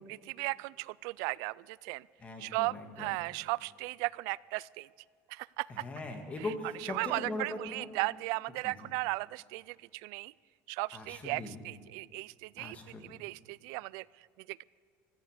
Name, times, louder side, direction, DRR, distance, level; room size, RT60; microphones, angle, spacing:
voice 1, 0.3-2.1 2.4-4.9 5.3-5.8 6.9-10.3 10.7-12.8 13.0-14.6, right 23 dB, 90° right, 22 dB, 0.3 m, -36 dB
voice 2, 2.2-3.2 5.7-7.9 8.6-8.9 10.9-11.6 12.6-13.2, left 2 dB, 25° left, 4 dB, 2.0 m, -40 dB
15.5 x 13.5 x 6.7 m, 2.1 s
cardioid pair, 160°, 6 cm